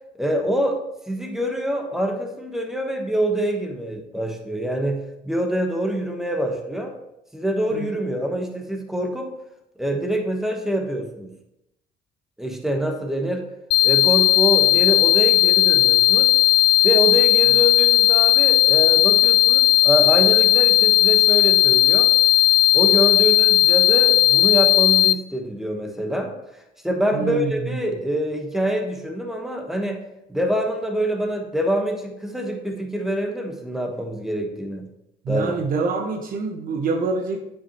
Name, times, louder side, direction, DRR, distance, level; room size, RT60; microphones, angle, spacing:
voice 1, 0.1-0.8 1.1-5.0 5.2-6.9 7.3-9.3 9.8-11.3 12.4-13.4 13.8-16.3 16.8-22.1 22.7-30.0 30.3-34.9 35.3-35.5, equal, ahead, 3 dB, 1.2 m, -25 dB
sound 1, 13.7-25.1, left 16 dB, 85° left, 0.4 m, -16 dB
voice 2, 27.1-27.8 35.2-37.4, right 4 dB, 55° right, 3 dB, 0.9 m, -26 dB
8.2 x 5.7 x 3.0 m, 0.86 s
cardioid pair, 110°, 17 cm